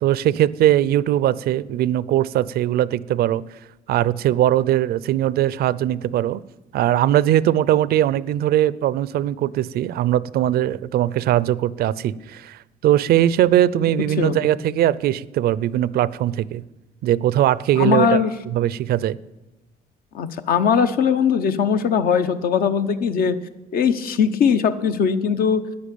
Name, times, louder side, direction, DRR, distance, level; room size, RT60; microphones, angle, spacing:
voice 1, 0.0-3.4 3.9-6.4 6.7-16.6 17.0-18.2 18.5-19.2, right 12 dB, 65° right, 20 dB, 0.5 m, -20 dB
voice 2, 14.2-14.5 17.8-18.3 20.1-23.3 23.7-25.6, left 7 dB, 60° left, 10 dB, 1.0 m, -20 dB
10.5 x 9.8 x 8.4 m, 1.1 s
cardioid pair, 110°, 17 cm